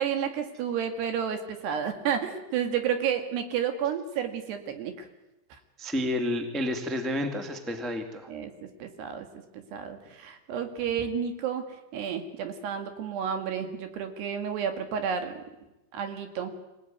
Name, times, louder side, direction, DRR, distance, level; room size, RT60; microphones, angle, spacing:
voice 1, 0.0-5.1 8.3-9.3 9.5-15.4 15.9-16.5, right 8 dB, 65° right, 7 dB, 3.9 m, -31 dB
voice 2, 5.8-8.3, left 1 dB, ahead, 5 dB, 0.5 m, -30 dB
25.5 x 18.0 x 9.5 m, 0.99 s
omnidirectional pair, 5.4 m